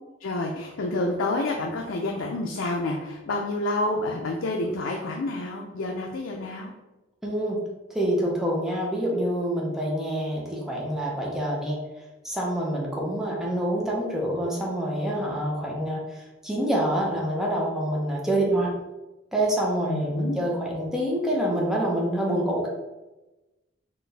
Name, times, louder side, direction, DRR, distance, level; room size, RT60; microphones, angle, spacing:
voice 1, 0.2-6.7 19.9-20.4, left 2 dB, 80° left, 1 dB, 0.4 m, -29 dB
voice 2, 7.2-7.6 7.9-11.8 12.2-18.7 19.3-22.7, right 1 dB, ahead, -3 dB, 0.7 m, -26 dB
4.4 x 2.5 x 3.3 m, 1.1 s
head